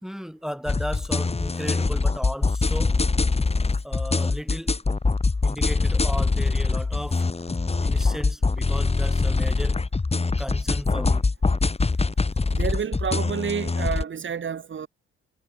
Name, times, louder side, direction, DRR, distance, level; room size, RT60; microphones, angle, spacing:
voice 1, 0.0-3.0 3.8-4.8 5.4-7.3 7.8-9.8 10.4-11.2, equal, ahead, 3.0 m, -35 dB
sound 1, 0.7-14.0, left 3 dB, 15° left, 1.5 m, -23 dB
voice 2, 12.5-14.9, right 7 dB, 35° right, 1.5 m, -29 dB
figure-of-eight pair, 40°, 36 cm